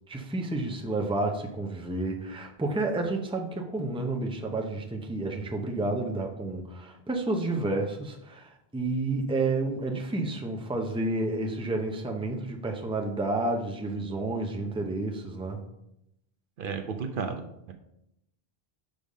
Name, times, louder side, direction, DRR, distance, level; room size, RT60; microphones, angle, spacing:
voice 1, 0.1-15.6, right 2 dB, 5° right, 2 dB, 0.6 m, -30 dB
voice 2, 16.6-17.7, right 5 dB, 65° right, 6 dB, 0.8 m, -33 dB
5.2 x 5.1 x 5.4 m, 0.81 s
omnidirectional pair, 1.0 m